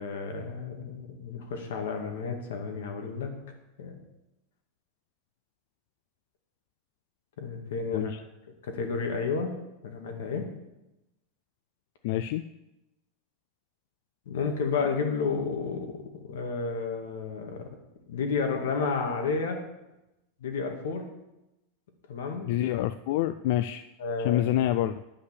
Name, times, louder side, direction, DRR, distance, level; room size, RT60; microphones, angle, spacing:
voice 1, 0.0-3.3 3.8-4.0 7.4-8.1 8.6-10.5 14.3-16.0 16.3-17.7 18.1-19.6 20.4-21.0 22.1-22.6 24.0-24.4, left 5 dB, 85° left, 3 dB, 2.2 m, -31 dB
voice 2, 12.0-12.4 22.5-23.8 24.2-24.9, left 13 dB, 55° left, 12 dB, 0.3 m, -27 dB
10.0 x 5.5 x 8.3 m, 0.95 s
supercardioid pair, 165°, 0 cm